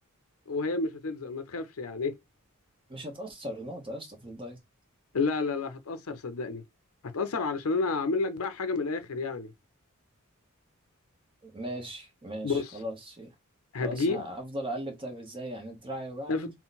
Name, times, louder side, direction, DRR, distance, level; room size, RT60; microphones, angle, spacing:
voice 1, 0.5-2.2 5.1-6.6 7.1-9.5 12.4-12.7 13.7-14.2 16.3-16.5, left 3 dB, 80° left, 0.6 m, -30 dB
voice 2, 2.9-4.6 11.4-13.3 13.8-16.5, equal, 25° right, 1.0 m, -38 dB
3.9 x 2.1 x 4.0 m
head